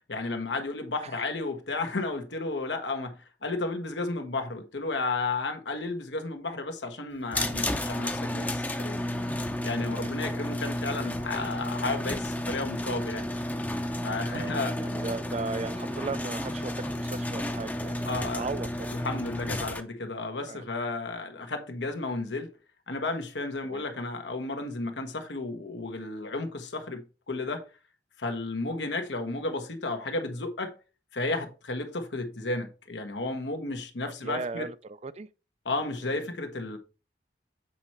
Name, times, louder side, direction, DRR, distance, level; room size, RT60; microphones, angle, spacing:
voice 1, 0.1-9.0 9.6-13.3 14.0-14.8 18.1-18.4 19.0-22.5 22.9-27.7 28.2-30.7 31.1-34.7 35.6-36.8, left 3 dB, 85° left, 1.3 m, -33 dB
sound 1, 7.3-19.8, left 1 dB, 10° left, 0.6 m, -32 dB
voice 2, 9.8-10.1 14.3-18.7 20.5-20.6 23.6-23.9 34.0-35.3 36.0-36.2, right 3 dB, 35° right, 0.4 m, -37 dB
8.1 x 4.3 x 4.5 m
head